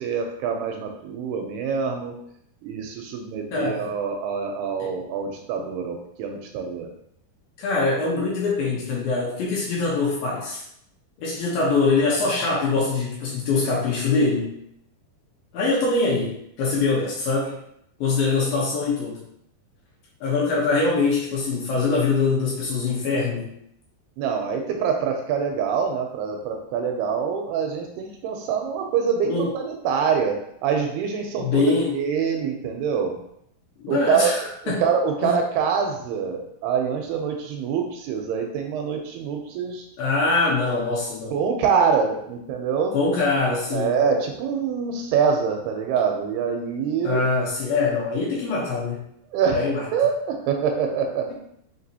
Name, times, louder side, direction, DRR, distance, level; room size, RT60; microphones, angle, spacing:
voice 1, 0.0-2.1 2.6-6.9 24.2-33.2 33.9-34.3 34.7-39.9 41.3-42.9 43.7-47.2 49.3-49.7 49.9-51.4, right 6 dB, 85° right, 3 dB, 2.4 m, -25 dB
voice 2, 3.5-3.9 4.8-5.0 7.6-10.6 11.2-14.5 15.5-17.6 18.0-19.2 20.2-23.5 29.3-29.5 31.4-31.9 33.8-34.4 34.7-34.8 35.2-35.4 40.0-41.4 42.9-44.0 47.0-49.0 49.5-49.8, left 3 dB, 75° left, -5 dB, 2.3 m, -23 dB
5.9 x 2.7 x 2.7 m, 0.73 s
omnidirectional pair, 4.7 m